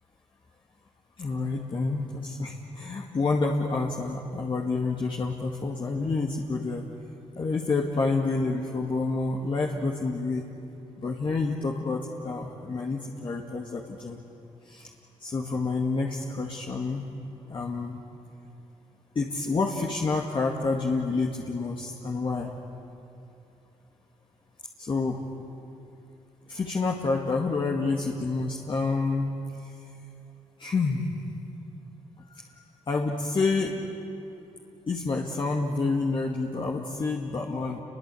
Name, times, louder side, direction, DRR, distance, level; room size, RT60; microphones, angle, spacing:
voice 1, 1.2-6.9 7.4-10.5 11.0-14.2 14.7-14.9 15.2-17.0 17.5-18.0 19.2-22.5 24.8-25.3 26.5-29.3 29.6-29.7 30.6-31.1 32.3-32.4 32.9-33.9 34.9-37.8, left 3 dB, 45° left, -1 dB, 2.2 m, -28 dB
28.5 x 23.0 x 8.6 m, 2.8 s
cardioid pair, 75°, 12 cm